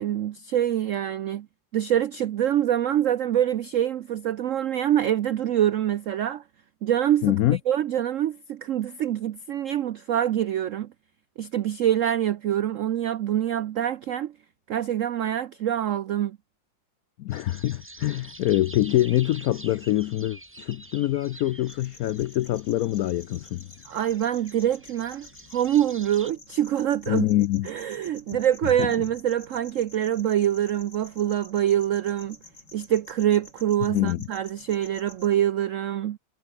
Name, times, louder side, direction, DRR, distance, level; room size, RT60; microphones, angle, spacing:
voice 1, 0.0-1.5 1.7-6.4 6.8-7.3 7.7-10.9 11.4-14.3 14.7-16.4 23.9-27.3 27.6-32.4 32.7-36.2, right 11 dB, 85° right, 0.6 m, -25 dB
voice 2, 7.2-7.6 17.2-23.7 27.1-27.7 28.8-28.9 33.9-34.3, left 14 dB, 80° left, 0.8 m, -25 dB
sound 1, 17.3-26.3, right 2 dB, 15° right, 0.5 m, -47 dB
sound 2, 21.7-35.3, left 3 dB, 65° left, 6.8 m, -50 dB
omnidirectional pair, 2.1 m